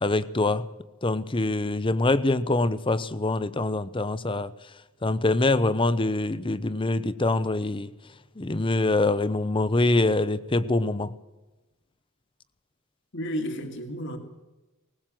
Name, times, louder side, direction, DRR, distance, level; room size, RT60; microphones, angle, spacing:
voice 1, 0.0-0.7 1.0-4.5 5.0-7.9 8.4-11.1, left 2 dB, 25° left, 0.7 m, -24 dB
voice 2, 13.1-14.2, equal, 60° left, 2.2 m, -32 dB
20.0 x 19.5 x 7.6 m
head